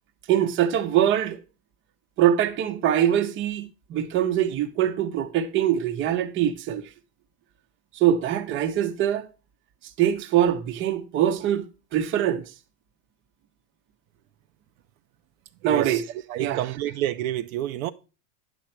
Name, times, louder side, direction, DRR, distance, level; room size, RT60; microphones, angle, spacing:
voice 1, 0.3-1.4 2.2-6.8 7.9-9.2 10.0-11.6 11.9-12.4 15.6-16.0 16.4-16.6, right 10 dB, 25° right, 0.8 m, -23 dB
voice 2, 15.7-16.0 16.3-17.9, right 13 dB, 65° right, 0.6 m, -28 dB
9.9 x 6.6 x 4.4 m
supercardioid pair, 155°, 46 cm